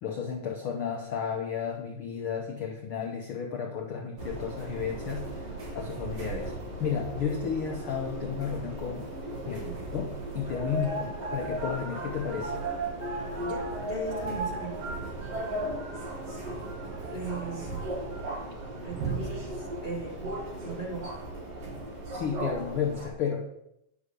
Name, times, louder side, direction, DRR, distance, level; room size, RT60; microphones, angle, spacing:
voice 1, 0.0-6.5 6.8-9.1 9.5-9.6 9.9-12.6 22.1-23.5, left 7 dB, 65° left, 1 dB, 1.4 m, -33 dB
sound 1, 4.2-23.1, right 2 dB, 55° right, 2.8 m, -36 dB
voice 2, 9.4-9.8 10.7-11.1 13.4-14.8 17.1-17.8 18.8-20.4 20.6-21.1, right 3 dB, 20° right, -5 dB, 1.8 m, -38 dB
9.9 x 6.3 x 5.2 m, 0.79 s
omnidirectional pair, 3.5 m